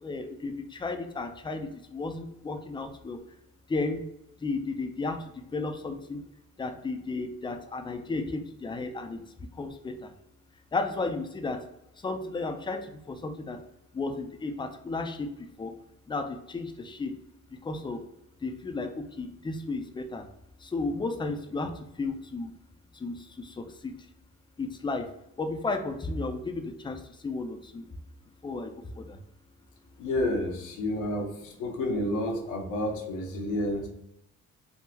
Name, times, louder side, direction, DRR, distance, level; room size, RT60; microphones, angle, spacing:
voice 1, 0.0-3.2 3.7-4.0 4.4-5.2 5.5-6.2 6.6-9.2 9.6-9.9 10.7-11.6 12.0-13.6 13.9-15.3 15.6-15.7 16.1-17.1 17.6-18.0 18.4-18.9 19.2-20.2 20.7-21.7 22.0-22.5 23.0-23.1 23.6-23.9 24.6-25.1 25.4-27.8 28.4-28.7 29.0-29.2, left 3 dB, 15° left, 6 dB, 0.4 m, -33 dB
voice 2, 30.0-33.9, left 1 dB, 85° left, 0 dB, 0.9 m, -30 dB
3.7 x 2.1 x 2.8 m, 0.84 s
cardioid pair, 90°, 30 cm